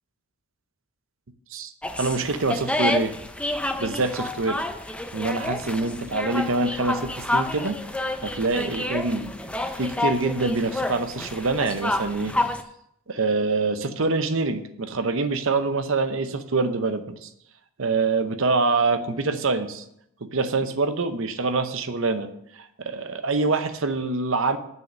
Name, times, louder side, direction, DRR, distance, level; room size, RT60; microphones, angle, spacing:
voice 1, 1.5-3.1 3.8-4.6 5.1-7.8 8.2-9.3 9.8-12.3 13.1-17.3 17.8-19.8 20.2-24.6, right 3 dB, 60° right, 10 dB, 0.8 m, -25 dB
sound 1, 1.8-12.6, left 1 dB, 5° left, 0.5 m, -29 dB
7.6 x 6.4 x 6.4 m, 0.74 s
head